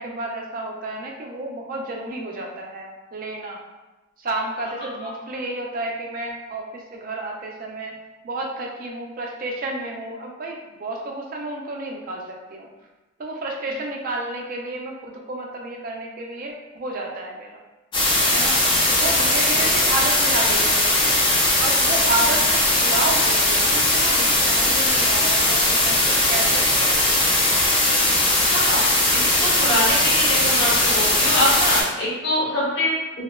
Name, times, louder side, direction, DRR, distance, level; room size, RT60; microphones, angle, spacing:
voice 1, 0.0-3.6 4.2-7.9 8.2-12.7 13.2-17.6 18.3-18.6 18.9-21.2 21.6-27.1, right 2 dB, 40° right, 0 dB, 0.3 m, -31 dB
sound 1, 17.9-31.8, left 1 dB, 25° left, 0.4 m, -19 dB
voice 2, 28.5-28.8 29.1-32.9, left 1 dB, 55° left, -6 dB, 0.9 m, -24 dB
2.7 x 2.1 x 2.2 m, 1.1 s
head